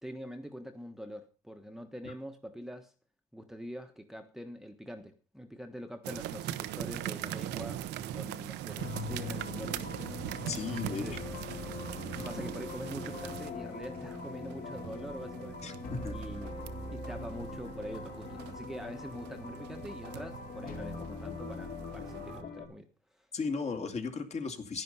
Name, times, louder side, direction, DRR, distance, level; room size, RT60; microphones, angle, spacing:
voice 1, 0.0-2.9 3.3-9.8 10.7-11.2 12.2-15.7 16.1-16.6 16.9-22.9 23.1-23.3, equal, ahead, 5 dB, 1.3 m, -44 dB
sound 1, 6.0-22.4, right 12 dB, 85° right, 0.9 m, -42 dB
sound 2, 8.8-22.7, left 3 dB, 60° left, 4.2 m, -42 dB
voice 2, 10.5-11.0 12.2-12.3 15.6-16.2 23.3-24.8, left 4 dB, 40° left, 5 dB, 2.6 m, -36 dB
11.0 x 11.0 x 5.5 m, 0.37 s
cardioid pair, 110°, 17 cm